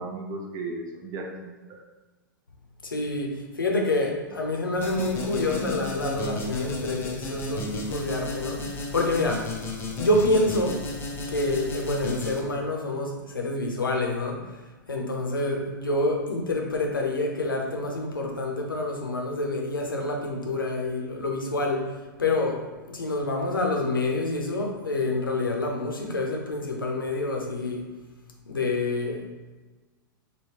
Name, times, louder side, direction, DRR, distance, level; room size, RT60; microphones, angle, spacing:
voice 1, 0.0-1.8 4.9-5.8, right 3 dB, 35° right, 0 dB, 0.6 m, -36 dB
voice 2, 2.8-9.5 10.0-10.8 11.3-14.4 14.9-21.9 22.2-27.8 28.5-29.2, left 2 dB, 85° left, 1 dB, 0.6 m, -27 dB
sound 1, 4.8-12.4, left 2 dB, 20° left, 0.4 m, -34 dB
3.4 x 2.2 x 3.0 m, 1.2 s
figure-of-eight pair, 100°, 11 cm